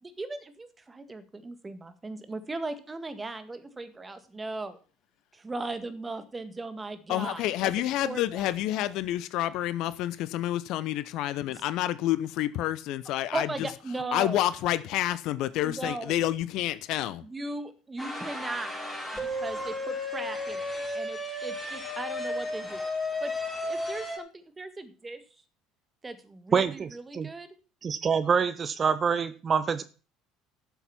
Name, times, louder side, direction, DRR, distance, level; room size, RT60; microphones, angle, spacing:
voice 1, 0.0-4.8 5.3-7.7 8.0-8.8 11.5-11.6 13.3-14.4 15.6-16.2 17.2-18.8 19.1-22.8 23.2-23.3 23.6-25.2 26.0-27.5, right 2 dB, 20° right, 1.9 m, -38 dB
voice 2, 7.1-13.5 14.1-17.2, left 14 dB, 60° left, 0.7 m, -29 dB
sound 1, 18.0-24.2, left 1 dB, 15° left, 4.4 m, -33 dB
voice 3, 26.5-27.3 27.8-29.8, right 6 dB, 35° right, 0.9 m, -26 dB
12.0 x 7.1 x 5.8 m
hypercardioid pair, 65°, 0 cm